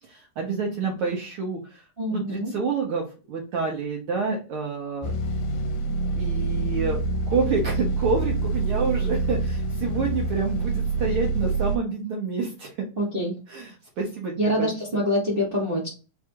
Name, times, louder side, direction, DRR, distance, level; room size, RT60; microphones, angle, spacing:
voice 1, 0.0-1.8 2.1-5.3 6.2-7.0 7.3-12.8 13.5-15.0, right 4 dB, 80° right, 0 dB, 1.2 m, -28 dB
voice 2, 2.0-2.5 13.0-13.3 14.4-15.9, equal, 65° right, -6 dB, 0.5 m, -25 dB
sound 1, 5.0-11.8, right 3 dB, 75° left, 1.9 m, -26 dB
4.7 x 2.3 x 4.4 m, 0.34 s
omnidirectional pair, 3.5 m